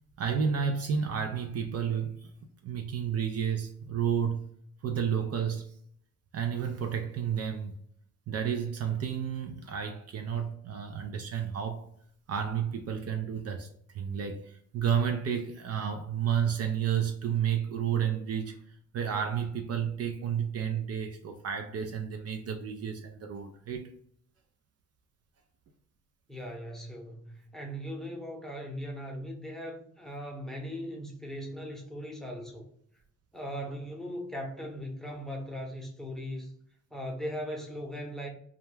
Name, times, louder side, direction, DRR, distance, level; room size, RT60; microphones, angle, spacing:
voice 1, 0.2-2.3 2.6-4.4 4.8-5.7 6.3-7.7 8.3-11.9 12.3-23.9, right 8 dB, 55° right, 0.4 m, -31 dB
voice 2, 26.3-32.7 33.3-36.5 36.9-38.3, equal, ahead, 0.8 m, -39 dB
2.3 x 2.1 x 3.1 m
cardioid pair, 90°, 30 cm